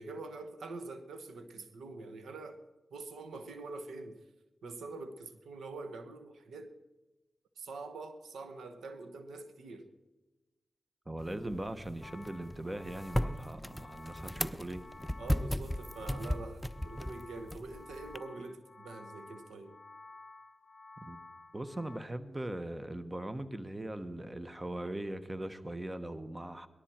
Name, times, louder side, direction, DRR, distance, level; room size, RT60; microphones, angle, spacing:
voice 1, 0.0-2.6 2.9-4.2 4.6-6.7 7.6-9.9 15.2-19.8, right 3 dB, 90° right, 9 dB, 1.1 m, -45 dB
voice 2, 11.1-14.8 21.0-21.2 21.5-26.7, right 1 dB, 20° right, 11 dB, 1.1 m, -40 dB
sound 1, 11.2-18.2, equal, 5° left, 0.6 m, -37 dB
sound 2, 12.0-22.0, left 3 dB, 40° left, 0.8 m, -53 dB
19.0 x 12.5 x 4.4 m, 1.1 s
cardioid pair, 45°, 0 cm